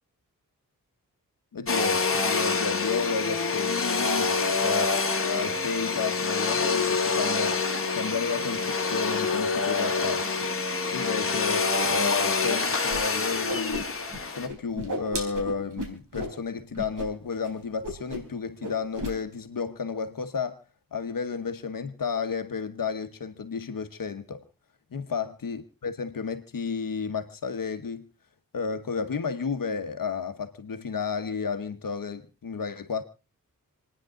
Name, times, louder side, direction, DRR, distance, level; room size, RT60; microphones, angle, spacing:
voice 1, 1.5-4.9 5.2-7.6 8.0-10.5 10.9-13.9 14.4-20.6 20.9-24.4 24.9-28.0 28.5-33.0, left 5 dB, 70° left, 1.2 m, -32 dB
Domestic sounds home sounds, 1.7-14.5, left 4 dB, 40° left, 1.7 m, -26 dB
Whoosh swoosh swish, 12.9-13.0 13.3-14.2 14.5-16.3 16.7-17.1 17.3-17.5 17.8-18.3 18.6-19.1, equal, 65° right, 3.9 m, -34 dB
28.0 x 9.8 x 3.8 m
wide cardioid pair, 115°, 34 cm